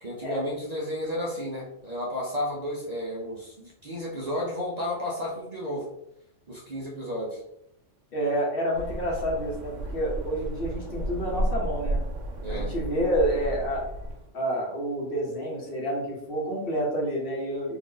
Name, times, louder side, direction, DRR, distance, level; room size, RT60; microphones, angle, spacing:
voice 1, 0.0-5.9 6.5-7.4 12.4-12.7, left 1 dB, 45° right, -4 dB, 0.6 m, -32 dB
voice 2, 8.1-12.0 12.5-13.9 14.3-17.8, equal, 55° left, -2 dB, 1.0 m, -29 dB
sound 1, 8.7-14.3, right 1 dB, 85° right, 1.0 m, -32 dB
2.7 x 2.5 x 3.6 m, 0.79 s
omnidirectional pair, 1.2 m